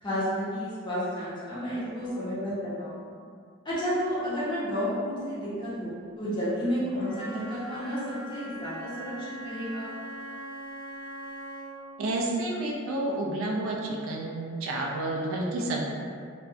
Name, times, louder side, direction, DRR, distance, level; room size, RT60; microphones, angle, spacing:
voice 1, 0.0-3.1 3.6-9.9, equal, 20° left, -10 dB, 0.7 m, -31 dB
Wind instrument woodwind instrument, 6.9-11.8, right 1 dB, 60° left, 0.7 m, -41 dB
voice 2, 12.0-13.8 14.0-15.8, right 2 dB, 70° right, -1 dB, 0.4 m, -30 dB
2.5 x 2.2 x 2.4 m, 2.2 s
head